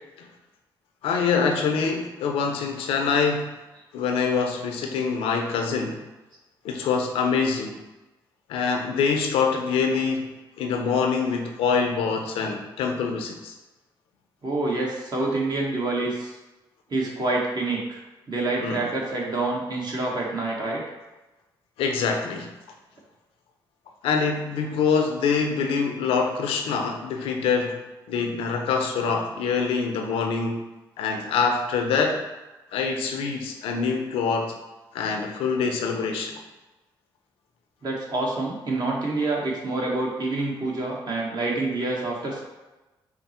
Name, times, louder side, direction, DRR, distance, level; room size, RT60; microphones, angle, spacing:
voice 1, 1.0-3.5 3.9-6.0 6.6-7.8 8.5-13.6 18.6-18.9 21.8-22.5 24.0-30.6 31.0-32.2 32.7-34.6 34.9-36.4, left 5 dB, 85° left, 4 dB, 0.5 m, -25 dB
voice 2, 14.4-16.3 16.9-18.0 18.3-20.8 37.8-42.4, right 2 dB, 50° right, -2 dB, 1.2 m, -27 dB
4.3 x 2.0 x 4.2 m, 1.1 s
supercardioid pair, 60°, 9 cm